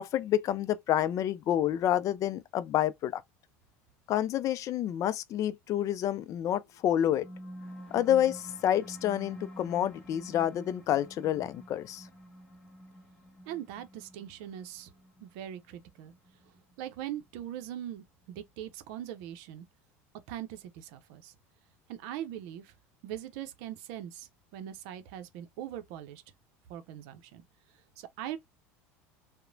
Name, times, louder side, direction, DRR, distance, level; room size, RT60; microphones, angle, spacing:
voice 1, 0.0-3.2 4.1-7.2 7.9-12.0, left 11 dB, 45° left, 0.4 m, -28 dB
sound 1, 6.8-17.8, equal, 15° left, 1.0 m, -49 dB
voice 2, 13.5-14.9 15.2-16.1 16.8-19.7 20.3-21.3 21.9-22.7 23.0-26.2 26.7-27.4 28.0-28.4, right 11 dB, 70° right, 0.6 m, -41 dB
2.9 x 2.0 x 2.6 m
hypercardioid pair, 90°, 7 cm